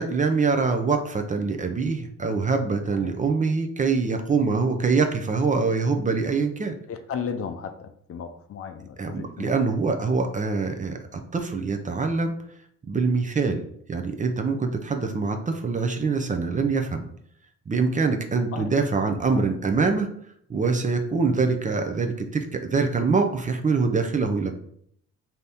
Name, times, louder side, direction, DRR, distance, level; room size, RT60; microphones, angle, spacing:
voice 1, 0.0-6.7 9.0-12.3 12.8-13.6 13.9-17.0 17.7-20.1 20.5-24.5, right 4 dB, 25° right, 5 dB, 0.5 m, -24 dB
voice 2, 6.9-9.5 18.5-18.7 19.3-19.5, left 6 dB, 50° left, 8 dB, 0.5 m, -35 dB
3.9 x 2.8 x 3.4 m, 0.66 s
cardioid pair, 90°, 30 cm